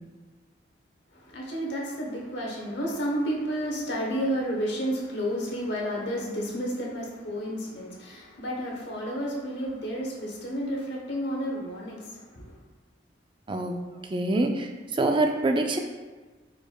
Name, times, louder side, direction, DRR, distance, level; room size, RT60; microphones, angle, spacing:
voice 1, 1.1-12.5, equal, 65° left, -2 dB, 1.0 m, -31 dB
voice 2, 14.1-15.8, right 2 dB, 25° right, 4 dB, 0.3 m, -25 dB
5.0 x 4.6 x 2.3 m, 1.3 s
head